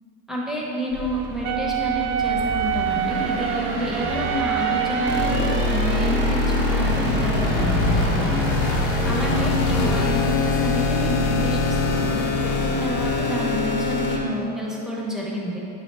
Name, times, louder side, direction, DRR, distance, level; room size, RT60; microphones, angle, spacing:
voice 1, 0.3-8.4 9.0-15.6, equal, ahead, -4 dB, 1.0 m, -29 dB
sound 1, 0.9-14.2, right 2 dB, 40° right, 0.7 m, -32 dB
Wind instrument woodwind instrument, 1.4-5.6, right 10 dB, 85° right, 0.5 m, -26 dB
sound 2, 5.1-14.2, left 3 dB, 35° left, 1.1 m, -23 dB
8.7 x 3.6 x 3.4 m, 2.7 s
supercardioid pair, 135°, 32 cm